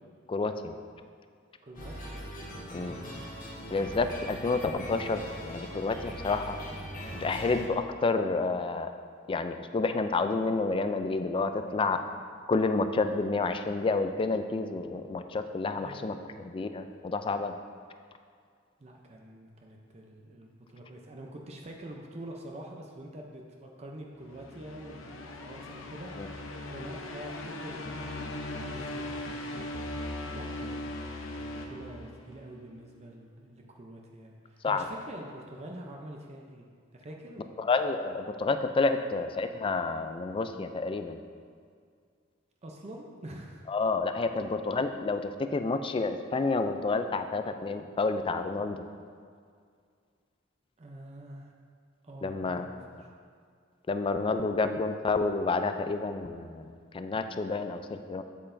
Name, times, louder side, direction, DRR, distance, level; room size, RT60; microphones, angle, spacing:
voice 1, 0.3-0.7 2.7-2.9 3.7-6.6 7.2-8.9 9.3-12.0 12.5-16.1 16.4-17.6 26.2-26.3 34.6-34.9 37.6-41.2 43.7-48.8 52.2-52.7 53.9-56.7 56.9-58.2, left 3 dB, 25° left, 8 dB, 0.3 m, -29 dB
voice 2, 1.6-2.3 2.9-3.2 14.9-15.0 15.7-16.2 18.8-29.7 30.3-36.7 36.9-37.7 42.6-43.6 50.8-51.5 52.0-53.1, right 1 dB, 35° right, 0 dB, 0.6 m, -46 dB
sound 1, 1.7-7.7, equal, 45° left, 1.3 m, -41 dB
sound 2, 24.2-32.5, left 1 dB, 90° left, 0.7 m, -39 dB
8.3 x 7.7 x 2.6 m, 2.1 s
head